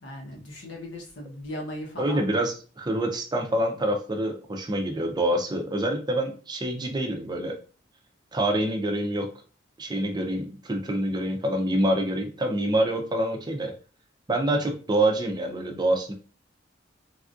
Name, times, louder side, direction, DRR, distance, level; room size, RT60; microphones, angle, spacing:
voice 1, 0.0-2.3, left 1 dB, 75° left, -1 dB, 1.0 m, -38 dB
voice 2, 2.0-7.5 8.3-9.3 9.8-13.7 14.3-16.1, right 1 dB, 20° right, 3 dB, 0.5 m, -26 dB
3.3 x 2.5 x 2.4 m, 0.37 s
head